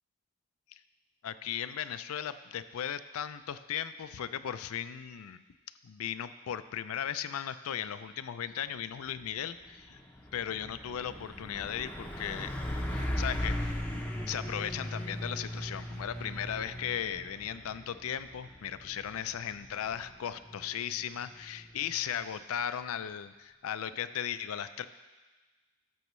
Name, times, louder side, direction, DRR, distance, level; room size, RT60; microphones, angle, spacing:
voice 1, 1.2-5.4 5.8-10.0 10.3-12.5 12.9-13.8 14.2-24.8, left 9 dB, 75° left, 13 dB, 0.4 m, -37 dB
Truck, 9.2-9.3 9.7-22.2, left 1 dB, 5° left, 0.6 m, -39 dB
13.5 x 7.0 x 3.1 m, 1.2 s
head